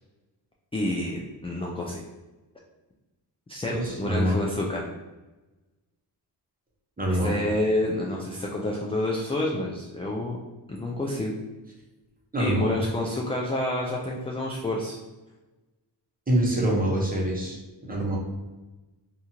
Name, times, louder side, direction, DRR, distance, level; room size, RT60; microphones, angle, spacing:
voice 1, 0.7-2.0 3.5-3.7 4.0-4.9 7.2-10.4 10.7-11.3 12.4-15.0, left 1 dB, 15° left, -2 dB, 0.3 m, -28 dB
voice 2, 3.7-4.4 7.0-7.3 12.3-12.7 16.3-17.6 17.9-18.2, right 1 dB, 20° right, -3 dB, 1.0 m, -25 dB
2.7 x 2.5 x 2.8 m, 1.1 s
cardioid pair, 65°, 42 cm